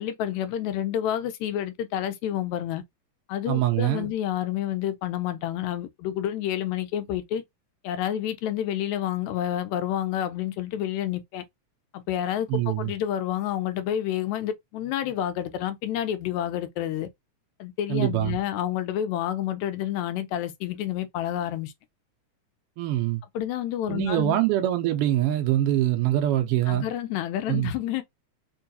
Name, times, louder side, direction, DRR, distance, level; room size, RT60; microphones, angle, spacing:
voice 1, 0.0-2.8 3.3-7.4 7.8-11.4 11.9-17.1 17.6-21.7 23.4-24.4 26.7-28.0, left 11 dB, 80° left, 2.0 m, -29 dB
voice 2, 3.5-4.1 12.5-12.9 17.9-18.4 22.8-23.2 23.9-26.9 27.5-27.7, right 13 dB, 90° right, 1.2 m, -24 dB
4.6 x 2.3 x 2.7 m
omnidirectional pair, 3.3 m